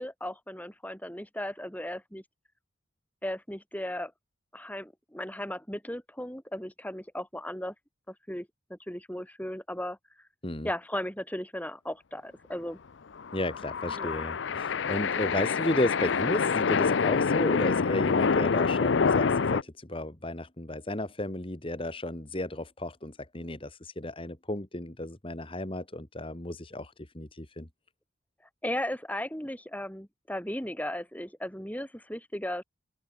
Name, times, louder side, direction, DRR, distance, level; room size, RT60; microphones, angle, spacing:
voice 1, 0.0-2.2 3.2-4.1 4.5-7.7 8.1-10.0 10.6-12.8 13.9-14.1 28.6-32.6, left 1 dB, 10° left, 6.5 m, -36 dB
sound 1, 13.2-19.6, left 5 dB, 65° left, 0.5 m, -26 dB
voice 2, 13.3-27.7, left 1 dB, 25° left, 2.0 m, -33 dB
open air
head